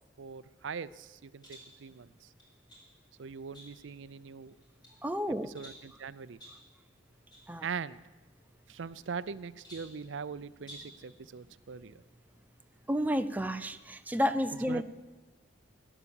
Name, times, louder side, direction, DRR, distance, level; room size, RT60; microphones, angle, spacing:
voice 1, 0.2-2.3 3.2-4.5 5.4-6.4 7.6-8.0 8.7-12.0 14.7-14.8, right 6 dB, 75° right, 16 dB, 0.5 m, -41 dB
sound 1, 1.4-1.8 2.4-2.9 3.5-4.0 4.5-5.0 5.5-5.9 6.4-6.7 7.3-7.5 7.8-7.9 8.7-9.3 9.6-10.0 10.6-11.0, equal, 25° left, 5.2 m, -52 dB
voice 2, 5.0-5.5 7.5-7.6 12.9-14.8, equal, 10° right, 9 dB, 0.5 m, -31 dB
17.0 x 11.0 x 7.1 m, 1.2 s
head